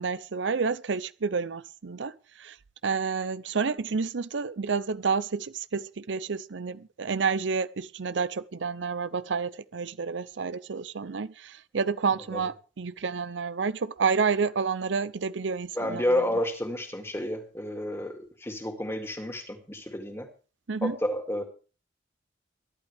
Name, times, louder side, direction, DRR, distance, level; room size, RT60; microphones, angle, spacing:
voice 1, 0.0-2.6 2.8-16.2 20.7-21.0, right 5 dB, 80° right, 0.6 m, -29 dB
voice 2, 15.7-20.3 20.8-21.4, left 1 dB, 15° left, 2.4 m, -30 dB
22.0 x 11.5 x 3.5 m
head